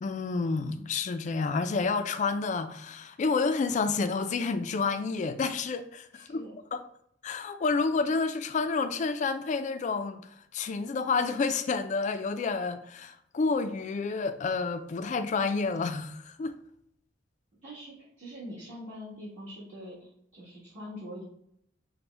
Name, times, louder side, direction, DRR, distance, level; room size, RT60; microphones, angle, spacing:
voice 1, 0.0-6.5 6.7-6.8 7.2-16.6, left 4 dB, 40° left, 0.3 m, -29 dB
voice 2, 6.1-6.5 17.6-21.2, equal, 40° right, 1.5 m, -44 dB
5.9 x 2.1 x 3.3 m
head